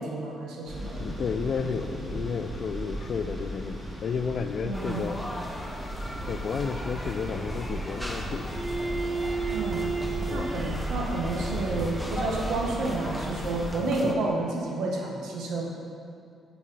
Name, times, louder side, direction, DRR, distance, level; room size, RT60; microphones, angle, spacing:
voice 1, 0.0-1.0 1.6-1.8 4.6-5.0 9.5-9.9 10.3-15.7, right 2 dB, 80° right, -1 dB, 1.1 m, -30 dB
sound 1, 0.6-13.7, right 1 dB, 10° right, 1.6 m, -35 dB
voice 2, 1.0-5.2 6.3-8.4 10.3-10.6 13.8-14.1, left 5 dB, 55° left, 10 dB, 0.3 m, -32 dB
sound 2, 4.7-14.1, equal, 5° left, 0.7 m, -40 dB
Bowed string instrument, 8.5-13.4, right 4 dB, 35° right, 0.8 m, -35 dB
5.6 x 5.1 x 5.4 m, 2.4 s
cardioid pair, 90°, 0 cm